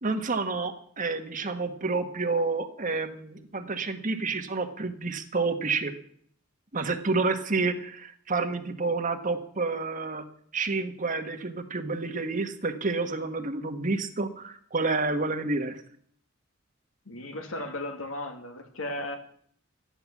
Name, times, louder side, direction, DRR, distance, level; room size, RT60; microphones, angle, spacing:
voice 1, 0.0-5.9 6.7-10.2 10.5-15.8, right 3 dB, 40° right, 1.4 m, -29 dB
voice 2, 17.1-19.2, left 1 dB, 80° left, 2.2 m, -35 dB
13.5 x 10.0 x 7.3 m
head